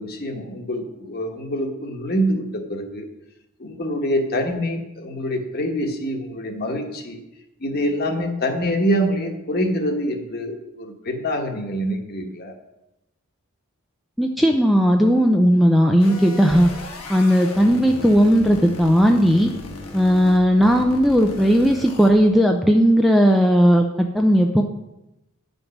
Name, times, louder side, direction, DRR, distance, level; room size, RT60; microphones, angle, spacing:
voice 1, 0.0-3.0 3.6-7.2 7.6-12.6, equal, 45° left, 4 dB, 1.2 m, -25 dB
voice 2, 14.2-16.7 17.1-19.5 19.9-24.6, equal, ahead, 3 dB, 0.4 m, -16 dB
sound 1, 16.0-22.1, left 2 dB, 75° left, 1.5 m, -36 dB
9.6 x 5.3 x 5.9 m, 0.92 s
head